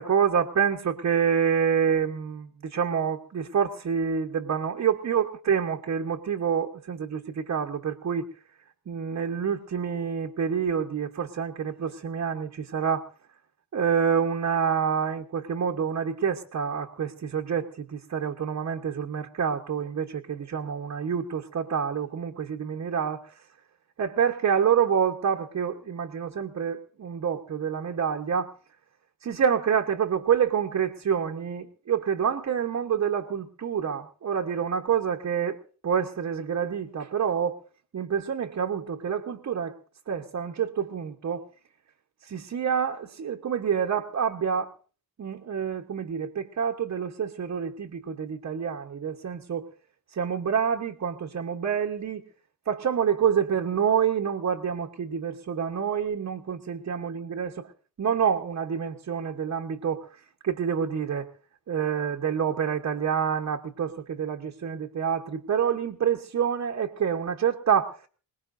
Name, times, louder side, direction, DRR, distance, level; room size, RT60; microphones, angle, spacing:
voice 1, 0.0-8.3 8.9-13.1 13.7-23.4 24.0-28.5 29.2-37.6 37.9-39.7 40.1-41.5 42.2-44.7 45.2-49.7 50.1-52.2 52.7-57.7 58.0-60.1 60.4-61.3 61.7-68.0, right 7 dB, 40° right, 1.1 m, -27 dB
22.5 x 20.0 x 2.6 m
cardioid pair, 145°, 42 cm